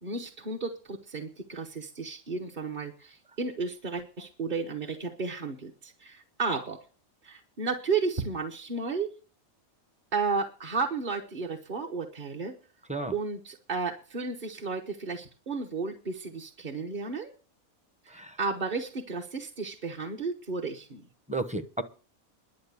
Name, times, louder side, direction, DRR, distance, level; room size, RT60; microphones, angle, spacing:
voice 1, 0.0-6.9 7.2-9.1 10.1-12.5 13.1-17.3 18.0-21.0, right 4 dB, 40° right, 1.1 m, -33 dB
voice 2, 21.3-21.8, right 2 dB, 5° right, 0.7 m, -32 dB
11.5 x 7.3 x 8.2 m
omnidirectional pair, 1.5 m